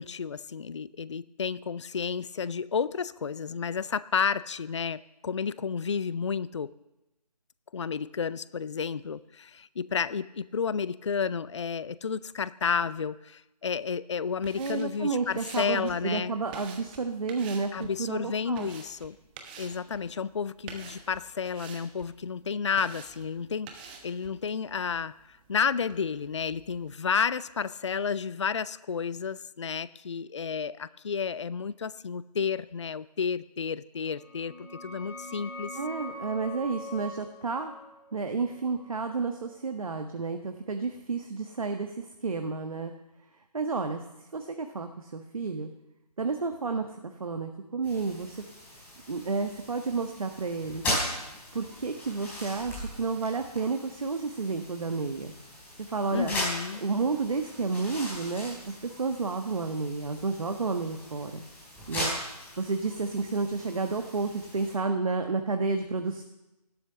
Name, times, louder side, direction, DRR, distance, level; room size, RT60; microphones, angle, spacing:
voice 1, 0.0-6.7 7.7-16.3 17.7-19.2 19.6-35.7 56.1-56.8, left 6 dB, 45° left, 18 dB, 0.5 m, -31 dB
sound 1, 14.3-26.9, right 5 dB, 15° right, 1.1 m, -50 dB
voice 2, 14.6-18.7 35.8-37.7 38.1-42.9 43.5-45.7 46.2-48.4 49.1-51.1 51.5-55.3 55.8-56.3 56.7-61.4 61.9-62.1 62.6-66.2, right 4 dB, 55° right, 6 dB, 1.4 m, -31 dB
sound 2, 34.1-39.6, equal, 90° right, 3.9 m, -43 dB
sound 3, 47.8-64.7, left 1 dB, 10° left, 4.7 m, -39 dB
15.5 x 12.0 x 6.8 m, 0.97 s
figure-of-eight pair, 155°, 20 cm